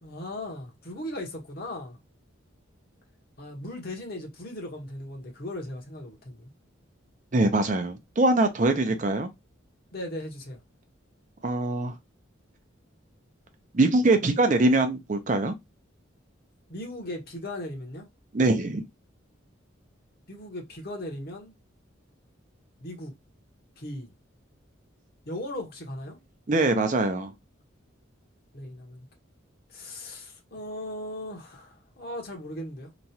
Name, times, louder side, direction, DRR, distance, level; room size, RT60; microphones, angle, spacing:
voice 1, 0.0-2.0 3.4-6.5 9.9-10.6 16.7-18.1 20.3-21.5 22.8-23.1 23.8-24.1 25.3-26.2 28.5-29.1 29.7-32.9, left 1 dB, 50° left, 1.0 m, -38 dB
voice 2, 7.3-9.3 11.4-11.9 13.7-15.5 18.3-18.8 26.5-27.3, right 2 dB, 40° right, 0.5 m, -23 dB
3.0 x 2.4 x 2.7 m
head